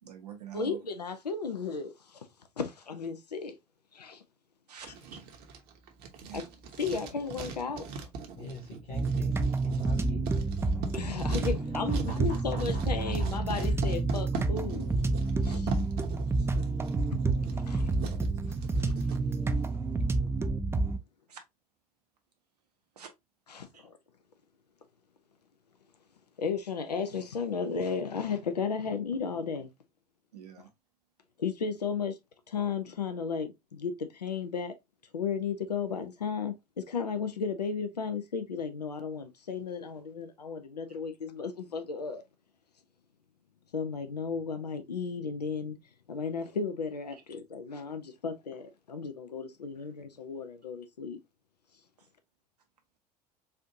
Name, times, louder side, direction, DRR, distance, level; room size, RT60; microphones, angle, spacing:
voice 1, 0.0-0.8 4.7-5.2 6.3-6.5 16.4-16.5 21.3-21.4 23.0-23.1 23.7-23.8 30.3-30.7, right 9 dB, 80° right, 0.9 m, -45 dB
voice 2, 0.5-2.3 2.6-3.6 3.9-4.2 6.3-6.4 6.8-8.1 10.9-15.0 15.4-15.8 16.6-16.7 17.4-18.0 18.5-19.2 19.5-19.6 23.5-24.0 26.4-29.7 30.6-30.7 31.4-32.2 32.5-34.7 35.1-42.2 43.7-45.8 46.1-51.2, left 5 dB, 85° left, 0.5 m, -34 dB
Writing, 4.8-19.2, right 5 dB, 50° right, 0.9 m, -41 dB
voice 3, 8.3-10.3 11.9-12.2 12.5-12.6 13.0-13.3, left 1 dB, 55° left, 1.5 m, -42 dB
sound 1, 8.9-21.0, right 3 dB, 10° right, 0.4 m, -29 dB
4.1 x 2.6 x 2.6 m
figure-of-eight pair, 65°, 20 cm